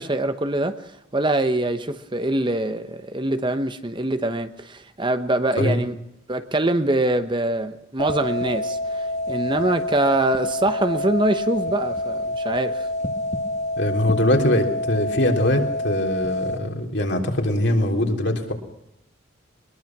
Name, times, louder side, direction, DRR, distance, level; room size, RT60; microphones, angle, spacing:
voice 1, 0.0-5.9 6.3-12.9, right 1 dB, 25° right, 1.0 m, -24 dB
sound 1, 8.0-16.6, left 1 dB, 35° left, 1.9 m, -27 dB
voice 2, 13.8-18.5, left 1 dB, 60° left, 3.5 m, -22 dB
23.0 x 21.5 x 6.1 m
head